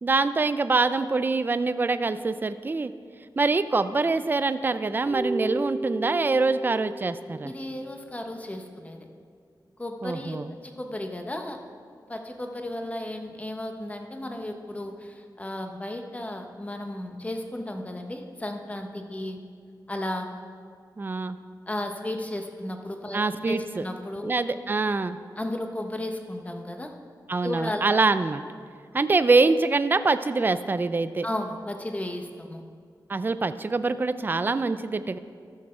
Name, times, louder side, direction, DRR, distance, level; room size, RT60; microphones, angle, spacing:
voice 1, 0.0-2.9 3.4-7.5 10.0-10.5 21.0-21.4 23.1-23.8 24.2-25.2 27.3-28.4 28.9-31.3 33.1-35.2, right 3 dB, 25° right, 12 dB, 0.3 m, -24 dB
Keyboard (musical), 5.1-8.3, right 1 dB, 60° right, 1.2 m, -34 dB
voice 2, 7.4-9.1 9.8-10.4 10.6-11.6 12.1-19.4 19.9-20.3 21.7-23.2 23.5-24.3 25.4-26.9 27.4-28.0 31.2-32.6, left 1 dB, 20° left, 4 dB, 0.9 m, -34 dB
13.5 x 6.5 x 4.3 m, 2.1 s
wide cardioid pair, 105°, 8 cm